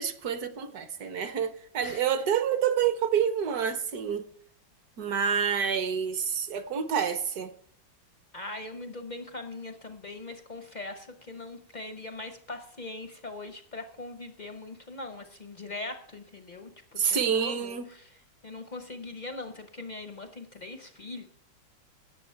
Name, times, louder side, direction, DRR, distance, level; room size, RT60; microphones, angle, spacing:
voice 1, 0.0-4.2 5.0-7.5 17.0-17.9, right 7 dB, 60° right, 10 dB, 1.1 m, -28 dB
voice 2, 8.3-18.1 18.4-21.3, left 2 dB, 50° left, 7 dB, 0.5 m, -41 dB
17.5 x 7.1 x 4.5 m, 0.67 s
omnidirectional pair, 2.1 m